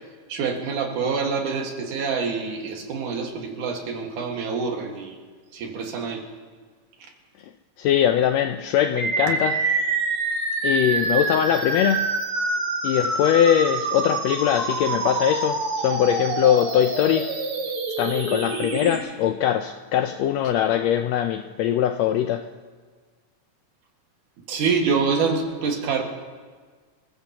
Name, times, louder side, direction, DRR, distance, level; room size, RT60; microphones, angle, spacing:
voice 1, 0.3-5.2 5.5-6.2 9.3-9.4 24.5-26.0, right 5 dB, 90° right, 3.3 m, -26 dB
voice 2, 7.8-9.6 10.6-12.1 12.8-17.3 18.0-22.5, left 10 dB, 80° left, 1.5 m, -21 dB
sound 1, 9.0-19.0, right 3 dB, 50° right, 2.6 m, -26 dB
26.5 x 15.0 x 2.9 m
omnidirectional pair, 3.5 m